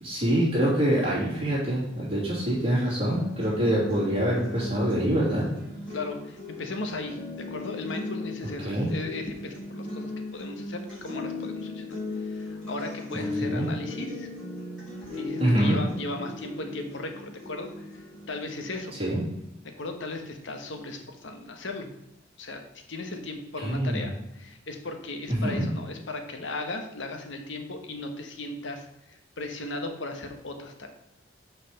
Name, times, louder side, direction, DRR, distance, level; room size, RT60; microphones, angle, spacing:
voice 1, 0.0-5.5 8.6-8.9 13.1-13.7 15.4-15.8 19.0-19.2 23.6-24.0 25.3-25.7, right 1 dB, 30° right, -8 dB, 2.8 m, -25 dB
sound 1, 3.1-19.1, left 2 dB, 5° left, 3.2 m, -37 dB
voice 2, 5.9-14.3 15.2-18.9 19.6-21.9 22.4-22.6 22.9-30.9, left 2 dB, 75° left, 5 dB, 1.1 m, -37 dB
5.7 x 4.9 x 6.4 m, 0.85 s
head